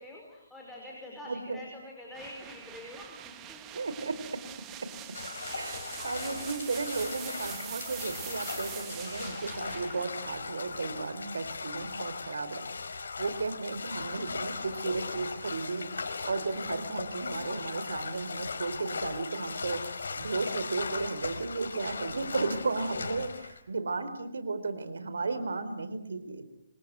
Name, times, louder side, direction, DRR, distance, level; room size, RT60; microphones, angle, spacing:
voice 1, 0.0-3.6 26.5-26.6, left 1 dB, 5° left, -3 dB, 5.2 m, -46 dB
voice 2, 1.3-1.6 3.8-4.4 4.8-4.9 5.5-15.9 16.2-19.8 20.1-26.4, right 3 dB, 85° right, 12 dB, 4.2 m, -34 dB
sound 1, 2.1-11.9, right 12 dB, 15° right, 1.4 m, -45 dB
sound 2, 5.1-23.6, left 4 dB, 80° left, 4.6 m, -38 dB
27.5 x 26.0 x 8.2 m, 0.80 s
hypercardioid pair, 165°, 0 cm